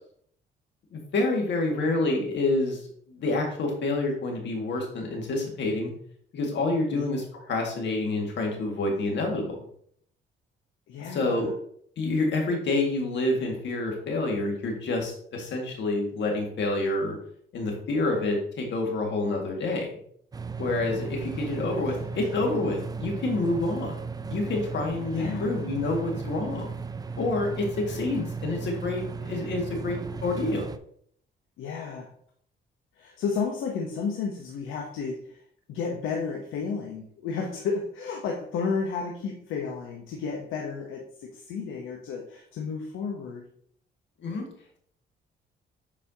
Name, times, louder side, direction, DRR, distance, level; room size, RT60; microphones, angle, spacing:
voice 1, 0.9-5.9 6.3-9.6 11.1-11.5 12.0-17.2 17.5-19.9 20.6-26.7 27.2-30.7 44.2-44.5, left 2 dB, 65° left, 1 dB, 1.9 m, -28 dB
voice 2, 10.9-11.5 21.9-22.2 25.1-25.6 31.6-32.1 32.9-35.4 35.7-43.4, left 5 dB, 85° left, 1 dB, 0.9 m, -32 dB
sound 1, 20.3-30.8, right 5 dB, 20° right, 0.4 m, -36 dB
7.3 x 4.9 x 2.8 m, 0.64 s
cardioid pair, 90°, 20 cm